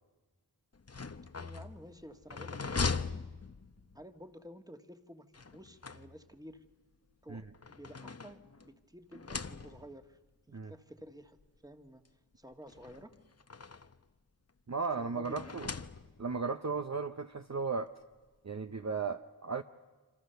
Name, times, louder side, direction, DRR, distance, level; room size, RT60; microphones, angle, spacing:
sound 1, 0.7-4.0 5.3-6.5 7.3-8.7 9.1-10.0 11.0-11.1 11.4-11.5 12.7-14.0 15.2-16.4, left 4 dB, 40° left, 0.8 m, -40 dB
voice 1, 1.4-3.3 3.9-5.3 5.5-6.6 7.2-10.2 10.5-12.0 12.4-13.1 15.0-15.5, equal, 10° right, 7 dB, 1.5 m, -52 dB
voice 2, 14.7-15.7 16.2-17.9 18.4-19.6, right 4 dB, 45° right, 7 dB, 0.7 m, -35 dB
27.0 x 26.0 x 6.8 m, 1.3 s
wide cardioid pair, 45°, 39 cm